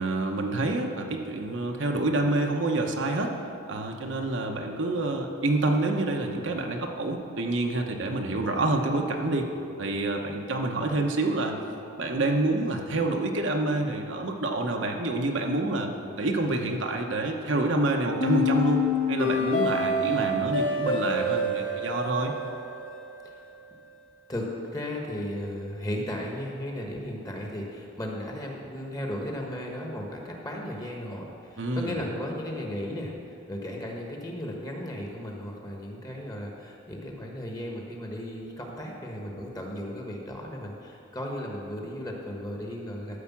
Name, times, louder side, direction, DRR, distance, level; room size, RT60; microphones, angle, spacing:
voice 1, 0.0-3.3 3.7-9.5 9.8-11.6 12.0-15.9 16.2-18.8 19.1-22.3 31.6-31.9, right 2 dB, 60° right, 2 dB, 0.9 m, -27 dB
sound 1, 18.2-23.2, left 2 dB, 75° left, 2.0 m, -27 dB
voice 2, 24.3-43.2, left 1 dB, 20° left, 0 dB, 1.3 m, -35 dB
13.0 x 4.9 x 7.2 m, 2.6 s
head